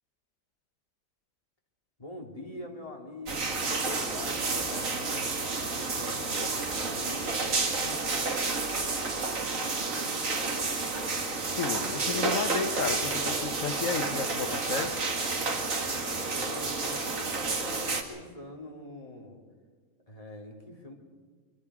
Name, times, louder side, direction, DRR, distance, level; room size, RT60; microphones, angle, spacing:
voice 1, 2.0-5.3 5.9-8.2 15.8-19.4 20.1-20.9, left 1 dB, 25° left, 0 dB, 2.7 m, -44 dB
sound 1, 3.3-18.0, right 3 dB, 85° right, 2.2 m, -30 dB
voice 2, 11.5-14.9, left 5 dB, 85° left, 7 dB, 1.5 m, -33 dB
24.5 x 24.5 x 4.9 m, 1.5 s
omnidirectional pair, 1.4 m